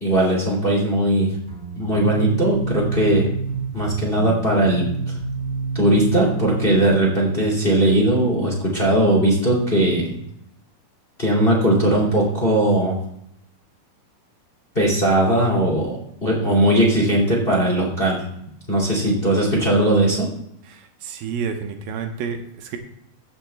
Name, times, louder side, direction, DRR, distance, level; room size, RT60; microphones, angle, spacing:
voice 1, 0.0-1.3 1.8-3.3 3.7-5.1 5.7-10.1 11.2-13.0 14.7-18.2 18.7-20.3, right 1 dB, 15° left, -2 dB, 2.3 m, -19 dB
sound 1, 1.5-6.8, right 4 dB, 35° right, 3.9 m, -28 dB
voice 2, 20.7-22.8, right 6 dB, 80° right, 6 dB, 2.7 m, -30 dB
15.0 x 7.1 x 3.4 m, 0.74 s
omnidirectional pair, 4.3 m